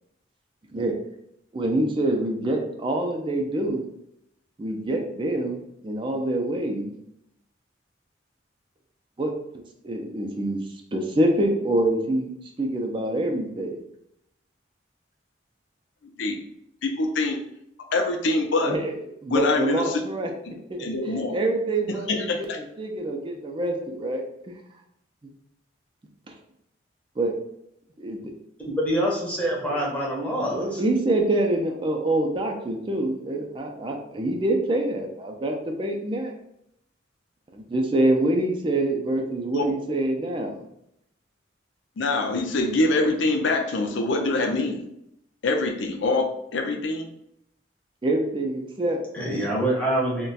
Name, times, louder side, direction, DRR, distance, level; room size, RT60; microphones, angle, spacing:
voice 1, 1.5-3.8 4.6-6.9 9.2-9.3 9.8-10.6 10.9-12.3 12.6-13.8 18.6-19.0 19.2-20.3 20.7-22.5 22.8-24.6 27.2-27.4 28.0-28.3 30.5-36.3 37.5-40.6 48.0-49.4, right 1 dB, 25° right, 2 dB, 0.4 m, -26 dB
voice 2, 16.8-17.4 17.8-18.7 19.3-20.0 20.5-20.6 20.8-21.4 21.9-22.6 39.5-39.6 42.0-44.9 45.4-47.1, left 2 dB, 80° left, 4 dB, 0.5 m, -24 dB
voice 3, 28.8-30.8 49.1-50.3, right 1 dB, 5° left, -4 dB, 0.7 m, -25 dB
2.3 x 2.2 x 3.9 m, 0.78 s
head